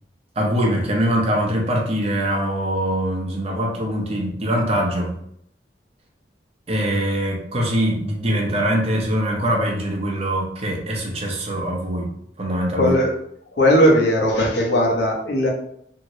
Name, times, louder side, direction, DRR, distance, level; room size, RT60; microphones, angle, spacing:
voice 1, 0.4-5.1 6.7-12.1 12.4-13.0, equal, 35° right, 0 dB, 0.7 m, -23 dB
voice 2, 12.8-13.1 13.6-15.5, equal, 90° left, -1 dB, 0.9 m, -17 dB
3.0 x 2.8 x 2.7 m, 0.70 s
head